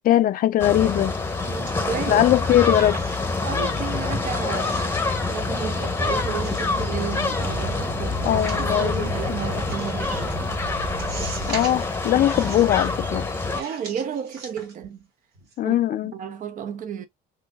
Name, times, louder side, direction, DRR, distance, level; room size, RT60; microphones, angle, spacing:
voice 1, 0.0-1.1 2.1-3.0 8.2-9.1 11.5-13.3 15.6-16.1, left 12 dB, 55° left, 0.5 m, -20 dB
sound 1, 0.6-13.6, left 3 dB, 15° left, 0.8 m, -26 dB
voice 2, 1.4-2.2 3.4-10.3 13.5-15.1 15.6-15.7 16.1-17.1, right 8 dB, 50° right, 0.7 m, -33 dB
sound 2, 1.7-2.2 2.5-3.4 3.8-3.9 4.5-5.2 5.5-6.0 6.3-7.5 8.2-9.0 9.6-9.9 10.3-10.4 11.0-11.9 12.3-12.9 13.5-15.0 15.3-15.5, right 4 dB, 90° right, 1.8 m, -40 dB
sound 3, 7.4-12.5, right 6 dB, 70° right, 1.7 m, -35 dB
4.0 x 2.7 x 2.4 m
cardioid pair, 110°, 17 cm